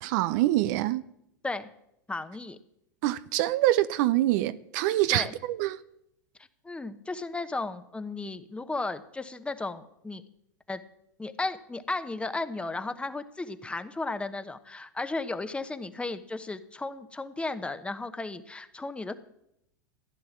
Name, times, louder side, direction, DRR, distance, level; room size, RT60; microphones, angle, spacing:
voice 1, 0.0-1.1 3.0-5.8, right 15 dB, 60° right, 0.6 m, -25 dB
voice 2, 2.1-2.6 5.1-5.3 6.6-10.2 10.7-10.8 11.2-19.1, left 3 dB, 10° left, 1.1 m, -34 dB
15.0 x 10.5 x 7.3 m
hypercardioid pair, 95°, 11 cm